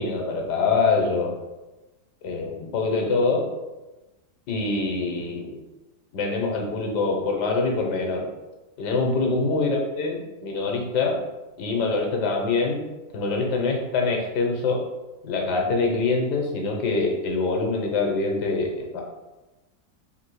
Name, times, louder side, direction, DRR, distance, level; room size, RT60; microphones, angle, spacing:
voice 1, 0.0-1.3 2.2-3.5 4.5-5.6 6.1-8.3 8.8-11.2 11.6-12.8 13.1-14.8 15.2-19.0, left 3 dB, 80° left, 1 dB, 1.4 m, -24 dB
3.6 x 2.7 x 4.5 m, 1.1 s
omnidirectional pair, 1.8 m